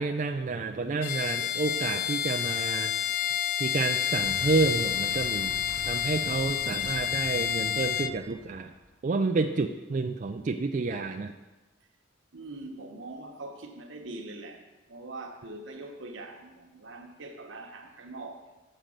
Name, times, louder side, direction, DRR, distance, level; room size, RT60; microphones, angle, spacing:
voice 1, 0.0-2.9 3.6-8.7 9.0-11.3, right 3 dB, 40° right, 4 dB, 0.4 m, -29 dB
Bowed string instrument, 1.0-8.2, left 9 dB, 45° left, 0.3 m, -29 dB
Explosion, 4.2-8.9, equal, 25° left, 2.4 m, -45 dB
voice 2, 12.3-18.6, right 2 dB, 75° right, 3 dB, 1.1 m, -43 dB
7.4 x 6.5 x 6.5 m, 1.1 s
head